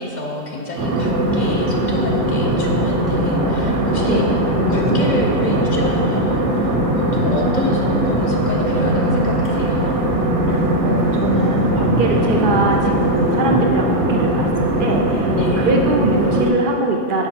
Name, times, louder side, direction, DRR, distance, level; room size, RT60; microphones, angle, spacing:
voice 1, 0.0-4.2 4.7-9.9 15.4-15.7, left 2 dB, 45° left, -1 dB, 0.7 m, -28 dB
sound 1, 0.8-16.5, right 1 dB, 75° right, 1.1 m, -19 dB
Thunder, 2.3-15.5, equal, 20° left, 0.4 m, -28 dB
voice 2, 10.5-15.3 15.6-17.3, right 2 dB, 55° right, 1 dB, 0.6 m, -22 dB
5.8 x 4.5 x 4.3 m, 2.5 s
omnidirectional pair, 1.2 m